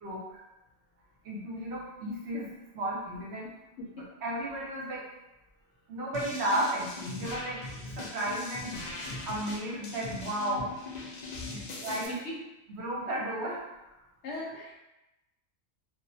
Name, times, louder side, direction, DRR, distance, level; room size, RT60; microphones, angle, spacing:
voice 1, 0.0-0.4 1.2-3.5 3.9-5.0 5.9-8.8 9.3-10.7 11.5-12.2 12.7-13.7, right 1 dB, 65° right, -3 dB, 0.8 m, -34 dB
sound 1, 6.1-12.1, left 2 dB, 90° left, 0.3 m, -40 dB
voice 2, 14.2-14.8, left 1 dB, 70° left, -3 dB, 0.9 m, -39 dB
2.3 x 2.1 x 2.6 m, 0.95 s
omnidirectional pair, 1.3 m